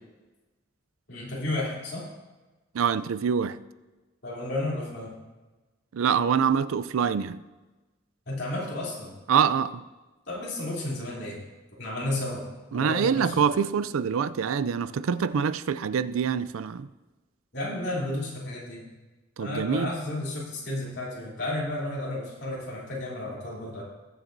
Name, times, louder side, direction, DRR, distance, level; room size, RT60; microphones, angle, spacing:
voice 1, 1.1-2.0 4.2-5.2 8.3-9.1 10.3-11.4 11.8-12.5 12.7-13.5 17.5-18.9 19.4-23.8, left 1 dB, 55° left, 3.1 m, -32 dB
voice 2, 2.7-3.6 5.9-7.4 9.3-9.8 12.7-16.9 19.4-19.9, right 7 dB, 90° right, 0.4 m, -25 dB
20.5 x 7.1 x 2.6 m
head